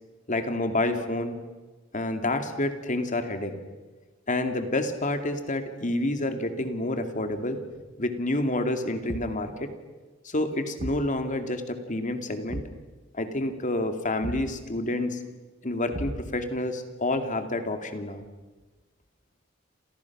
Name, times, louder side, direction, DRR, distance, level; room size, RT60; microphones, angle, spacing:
voice 1, 0.3-1.4 1.9-3.6 4.3-7.6 8.0-9.7 10.2-12.6 13.1-15.2 15.6-18.2, left 2 dB, 40° left, 7 dB, 2.5 m, -28 dB
Thump thud, 9.1-9.5 10.8-11.1 12.5-12.8 14.2-14.6 15.9-16.5, right 2 dB, 40° right, 0.8 m, -36 dB
29.0 x 28.0 x 6.1 m, 1.3 s
head